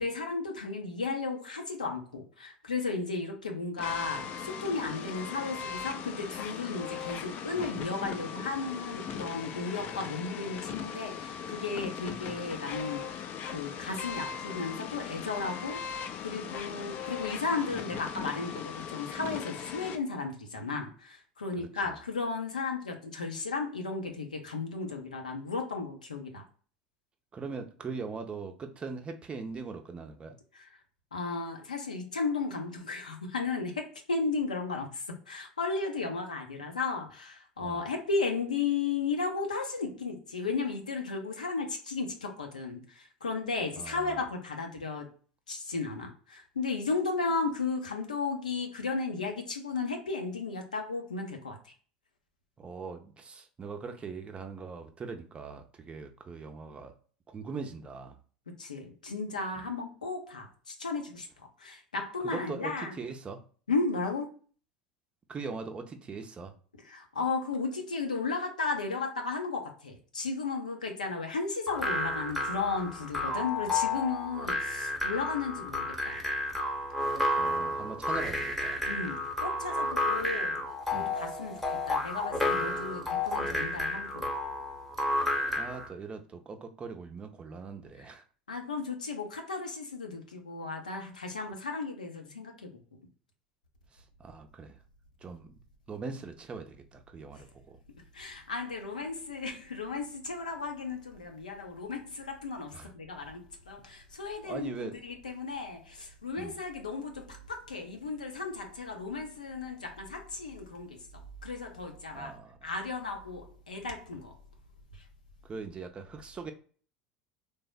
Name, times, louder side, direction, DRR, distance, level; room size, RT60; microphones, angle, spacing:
voice 1, 0.0-13.2 13.5-15.8 16.2-26.4 30.5-30.7 31.1-45.1 45.5-51.6 58.6-63.0 63.7-64.3 66.8-76.2 78.8-80.6 80.9-84.3 88.5-92.7 98.1-111.0 111.4-114.3, left 4 dB, 90° left, 0.6 m, -34 dB
sound 1, 3.8-20.0, left 7 dB, 45° left, 0.4 m, -39 dB
voice 2, 21.6-22.0 27.3-30.4 37.6-37.8 43.8-44.2 52.6-56.9 57.3-58.2 59.6-59.7 62.2-63.4 65.3-66.5 77.4-78.8 80.9-81.1 85.6-88.2 93.9-94.8 95.2-95.6 95.9-97.8 102.7-102.9 104.4-105.0 106.4-106.6 112.1-112.7 115.4-116.5, right 4 dB, 25° right, 0.5 m, -41 dB
sound 2, 71.7-85.9, left 1 dB, 5° left, 0.8 m, -31 dB
3.3 x 2.0 x 2.3 m
hypercardioid pair, 75°, 4 cm